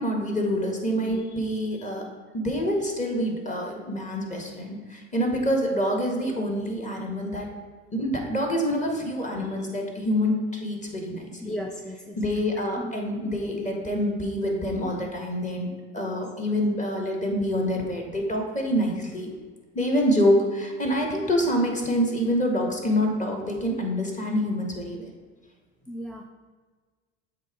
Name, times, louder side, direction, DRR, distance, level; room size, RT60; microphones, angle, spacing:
voice 1, 0.0-2.1 2.3-7.5 7.9-11.6 12.2-19.3 19.7-25.1, equal, 20° left, 1 dB, 1.6 m, -26 dB
voice 2, 11.4-12.2 12.8-13.0 16.1-16.2 25.9-26.2, equal, ahead, 1 dB, 0.3 m, -36 dB
7.5 x 3.0 x 4.9 m, 1.4 s
hypercardioid pair, 80°, 33 cm